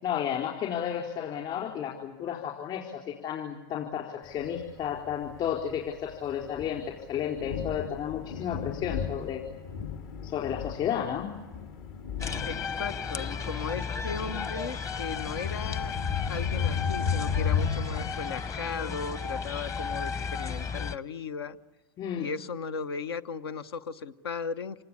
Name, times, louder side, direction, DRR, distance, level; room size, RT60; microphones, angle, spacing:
voice 1, 0.0-9.4 10.2-11.3 22.0-22.3, left 9 dB, 40° left, -1 dB, 4.3 m, -32 dB
Thunder, 4.4-18.1, left 6 dB, 60° left, 2.3 m, -34 dB
sound 1, 12.2-21.0, left 5 dB, 25° left, 1.0 m, -34 dB
voice 2, 12.4-15.9 16.3-21.6 22.2-24.8, left 5 dB, 85° left, 12 dB, 1.1 m, -36 dB
27.5 x 19.5 x 8.6 m, 1.2 s
hypercardioid pair, 105°, 12 cm